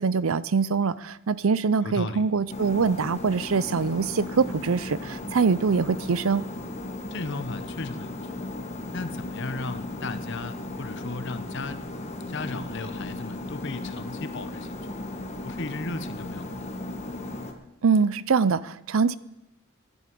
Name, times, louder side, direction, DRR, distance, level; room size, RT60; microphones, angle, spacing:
voice 1, 0.0-6.5 17.8-19.2, right 5 dB, 70° right, 18 dB, 0.5 m, -24 dB
voice 2, 1.8-2.2 7.1-8.3 8.9-11.8 12.3-14.8 15.4-16.5, left 3 dB, 55° left, 11 dB, 0.9 m, -35 dB
sound 1, 2.5-17.5, left 2 dB, 30° left, 1.4 m, -36 dB
11.5 x 11.0 x 7.7 m, 0.91 s
head